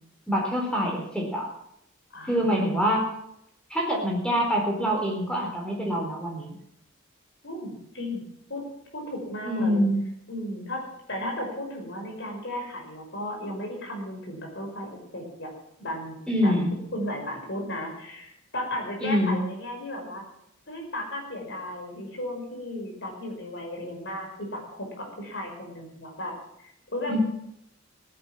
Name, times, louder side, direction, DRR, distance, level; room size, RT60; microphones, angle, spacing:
voice 1, 0.3-1.5 2.3-3.1 3.7-6.6 9.4-10.0 16.3-16.7 19.0-19.4 27.1-27.2, equal, 5° left, -1 dB, 4.4 m, -25 dB
voice 2, 2.1-2.8 7.4-8.2 8.5-8.6 8.9-9.8 10.3-10.8 11.1-15.5 15.8-16.2 16.4-16.5 16.9-20.2 20.7-26.3 26.6-27.2, left 1 dB, 60° left, 1 dB, 5.5 m, -35 dB
17.5 x 10.0 x 7.4 m, 0.76 s
head